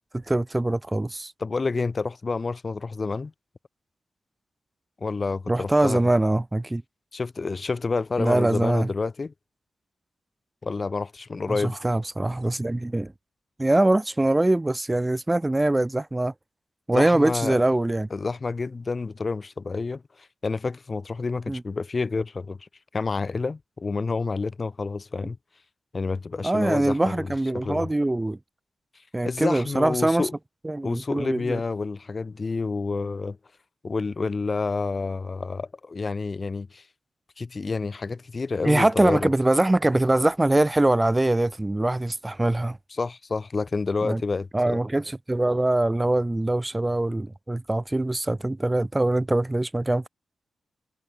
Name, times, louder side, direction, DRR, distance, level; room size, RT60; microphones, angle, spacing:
voice 1, 0.1-1.3 5.5-6.8 8.2-8.9 11.5-13.1 13.6-16.3 16.9-18.1 21.5-21.6 26.4-28.4 29.1-30.3 30.6-31.6 38.6-42.8 44.0-44.2 44.5-50.1, right 2 dB, 20° right, 1.0 m, -23 dB
voice 2, 1.4-3.3 5.0-6.0 7.1-9.3 10.6-11.8 16.9-17.6 18.1-25.4 25.9-27.3 27.5-27.9 29.2-30.3 30.8-33.4 33.8-36.8 37.4-39.3 43.0-44.8, left 4 dB, 45° left, 2.8 m, -29 dB
supercardioid pair, 45°, 0 cm